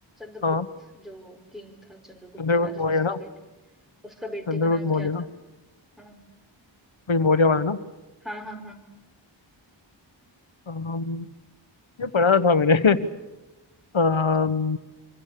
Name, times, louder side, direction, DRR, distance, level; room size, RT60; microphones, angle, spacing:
voice 1, 0.2-0.6 0.9-3.3 4.0-5.3 6.0-6.2 8.2-8.8, left 1 dB, ahead, 5 dB, 5.0 m, -40 dB
voice 2, 2.4-3.2 4.5-5.2 7.1-7.8 10.7-11.2 12.0-13.0 13.9-14.8, left 4 dB, 75° left, 12 dB, 1.4 m, -22 dB
25.5 x 25.5 x 6.9 m, 1.1 s
wide cardioid pair, 50°, 47 cm